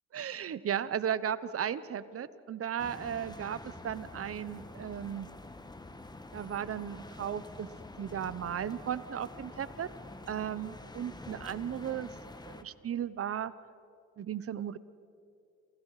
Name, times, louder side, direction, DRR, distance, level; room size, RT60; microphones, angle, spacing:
voice 1, 0.1-5.3 6.3-7.7 8.0-9.9 10.3-12.1 12.4-13.5 14.2-14.8, right 9 dB, 50° right, 16 dB, 1.0 m, -35 dB
sound 1, 2.8-12.6, left 2 dB, 15° left, 1.5 m, -47 dB
28.0 x 28.0 x 5.0 m, 2.6 s
cardioid pair, 90°, 30 cm